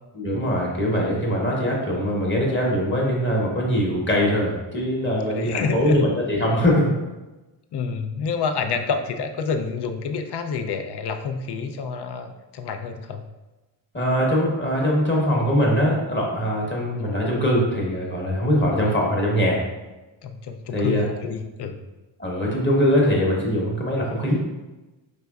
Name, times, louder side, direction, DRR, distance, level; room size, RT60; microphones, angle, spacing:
voice 1, 0.1-6.9 13.9-19.6 20.7-21.0 22.2-24.4, equal, 25° left, -3 dB, 1.0 m, -22 dB
voice 2, 5.0-6.1 7.7-13.2 17.0-17.2 18.8-19.0 20.2-21.8, left 5 dB, 55° left, 6 dB, 0.5 m, -28 dB
5.1 x 3.3 x 2.3 m, 1.1 s
wide cardioid pair, 115°, 48 cm